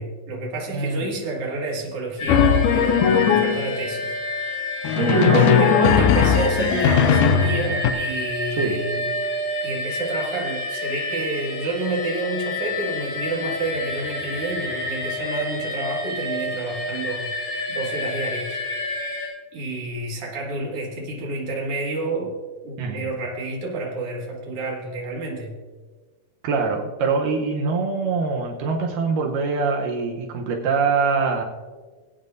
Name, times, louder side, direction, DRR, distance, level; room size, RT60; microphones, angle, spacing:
voice 1, 0.0-4.2 5.3-9.1 9.6-17.3 17.7-18.6 18.9-19.2 19.5-25.6, right 2 dB, 50° right, -2 dB, 2.7 m, -29 dB
voice 2, 0.7-1.1 4.9-6.0 8.6-8.8 22.8-23.1 26.4-31.4, right 4 dB, 85° right, 2 dB, 2.6 m, -24 dB
sound 1, 2.2-19.3, left 2 dB, 55° left, 5.6 m, -29 dB
Drum, 2.3-3.8 4.8-7.9, left 7 dB, 80° left, 2.1 m, -18 dB
20.5 x 8.8 x 2.6 m, 1.4 s
omnidirectional pair, 3.7 m